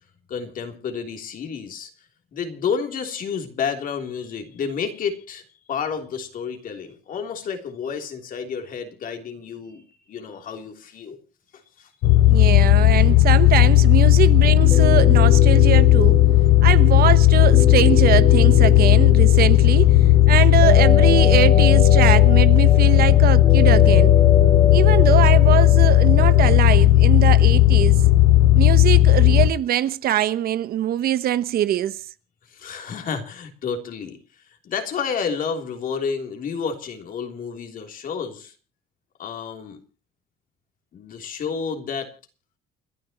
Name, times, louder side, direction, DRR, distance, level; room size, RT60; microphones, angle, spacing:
voice 1, 0.3-1.9 2.3-11.2 11.5-11.9 32.5-34.2 34.5-38.5 39.2-39.8 40.9-42.1, left 6 dB, 55° left, 3.3 m, -30 dB
sound 1, 12.0-29.5, left 14 dB, 75° left, 1.0 m, -14 dB
voice 2, 12.3-16.2 16.6-20.0 20.3-24.1 24.7-28.0 28.5-32.0, right 11 dB, 65° right, 1.0 m, -22 dB
sound 2, 14.6-26.6, left 4 dB, 40° left, 3.4 m, -26 dB
30.0 x 11.0 x 3.0 m
cardioid pair, 110°, 17 cm